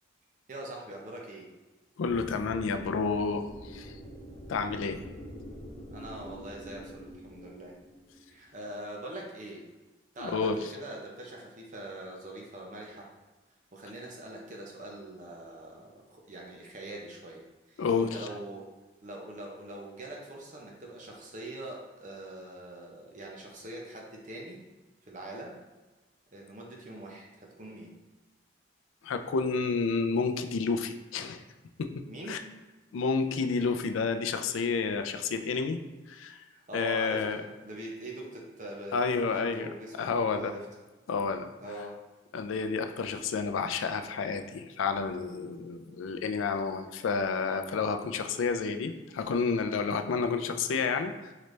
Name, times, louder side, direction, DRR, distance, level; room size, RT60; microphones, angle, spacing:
voice 1, 0.5-1.5 5.9-7.8 8.3-9.6 10.1-13.1 13.7-18.7 19.0-24.6 25.0-25.5 26.3-27.9 32.1-32.4 36.5-40.7 41.6-42.0 49.8-50.1, right 1 dB, 40° right, -2 dB, 0.7 m, -43 dB
voice 2, 2.0-4.0 4.5-5.0 10.2-10.6 17.8-18.2 29.0-31.4 31.8-31.9 32.3-32.4 32.9-35.8 36.1-36.4 36.7-37.4 38.9-40.5 41.1-41.5 42.3-51.1, left 5 dB, 90° left, 7 dB, 0.4 m, -30 dB
sound 1, 2.0-8.7, equal, 30° left, 1.1 m, -46 dB
3.8 x 3.2 x 3.2 m, 1.2 s
head